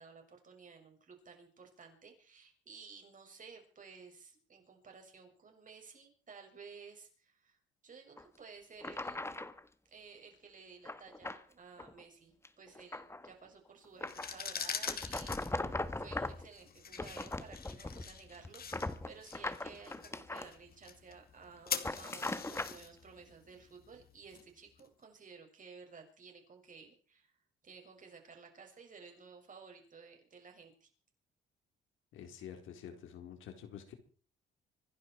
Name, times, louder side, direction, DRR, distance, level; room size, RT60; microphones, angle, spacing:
voice 1, 0.0-7.6 7.8-9.2 9.9-27.3 27.6-30.9, right 5 dB, 40° right, 3 dB, 6.7 m, -55 dB
sound 1, 8.2-8.3 8.8-9.6 10.9-11.4 11.8-12.0 12.4-13.3 14.0-14.4 14.9-16.5 16.9-18.1 18.4-20.5 21.7-22.8, left 2 dB, 15° left, 1.5 m, -40 dB
sound 2, 14.0-24.8, left 7 dB, 50° left, 2.4 m, -44 dB
voice 2, 32.1-33.9, left 9 dB, 85° left, 6 dB, 4.2 m, -48 dB
26.0 x 11.5 x 4.7 m, 0.41 s
cardioid pair, 90°, 20 cm